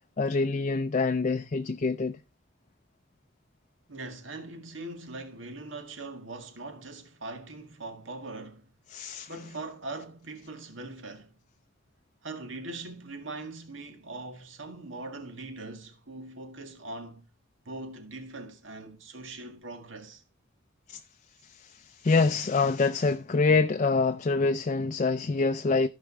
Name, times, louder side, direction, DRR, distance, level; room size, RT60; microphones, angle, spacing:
voice 1, 0.2-2.2 8.9-9.3 20.9-21.0 21.4-25.9, left 4 dB, 40° left, 0.4 m, -26 dB
voice 2, 3.9-8.7 9.3-11.4 12.2-17.3 17.7-20.2, right 2 dB, 85° right, 1.9 m, -41 dB
15.0 x 5.2 x 3.4 m
head